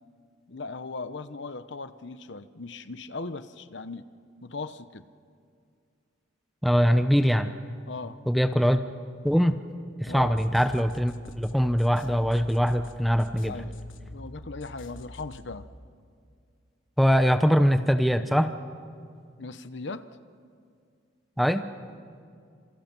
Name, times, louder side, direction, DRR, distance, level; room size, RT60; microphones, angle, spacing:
voice 1, 0.5-4.1 4.4-5.0 7.9-8.2 10.1-10.3 13.4-15.7 19.4-20.1, left 3 dB, 65° left, 12 dB, 0.9 m, -38 dB
voice 2, 6.6-7.5 8.3-8.8 9.2-9.6 10.0-13.5 17.0-18.5 21.4-21.6, equal, ahead, 8 dB, 0.8 m, -22 dB
sound 1, 10.0-15.7, left 1 dB, 80° left, 1.4 m, -46 dB
29.0 x 27.0 x 6.1 m, 2.2 s
head